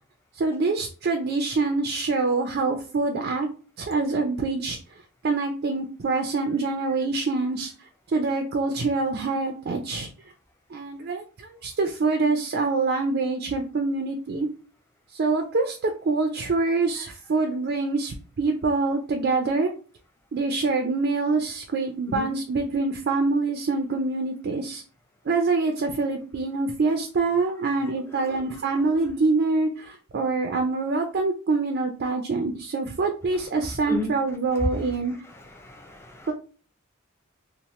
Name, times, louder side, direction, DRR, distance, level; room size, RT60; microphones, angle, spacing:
voice 1, 0.4-3.5 3.8-4.8 5.2-10.1 10.7-14.5 15.1-19.7 20.3-24.8 25.3-35.1 36.3-36.4, right 3 dB, 50° right, 4 dB, 0.4 m, -25 dB
voice 2, 28.1-28.6 33.3-33.5 33.9-34.1 34.6-34.7 35.2-36.3, left 2 dB, 10° left, 1 dB, 0.4 m, -35 dB
2.9 x 2.0 x 3.0 m, 0.38 s
head